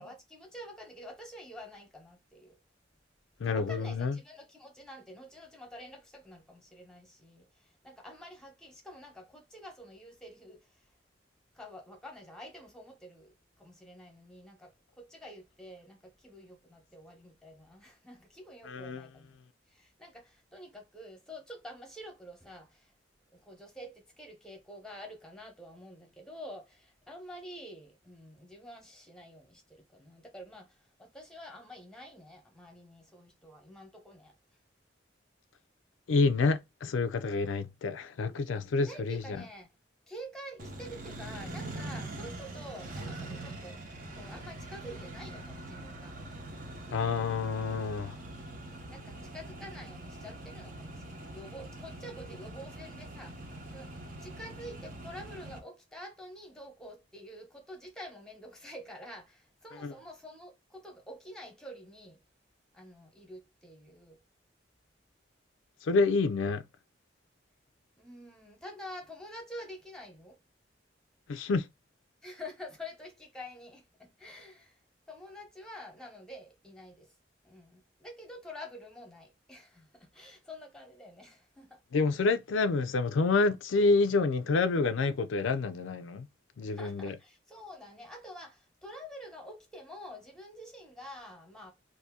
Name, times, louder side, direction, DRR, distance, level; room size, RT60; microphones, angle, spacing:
voice 1, 0.0-2.6 3.4-10.9 11.5-19.4 19.7-22.9 23.3-34.4 38.8-39.7 40.1-46.1 48.9-53.4 53.7-62.2 62.7-64.2 68.0-70.4 72.2-74.8 75.1-77.1 77.4-81.8 86.7-91.7, equal, 5° left, 0.9 m, -48 dB
voice 2, 3.4-4.2 18.6-19.1 36.1-39.2 46.9-48.2 59.8-59.9 65.8-66.6 71.3-71.7 81.9-86.3 86.6-87.1, left 3 dB, 85° left, 0.4 m, -28 dB
Accelerating revving vroom, 40.6-55.6, right 1 dB, 45° right, 0.8 m, -43 dB
2.7 x 2.6 x 3.6 m
head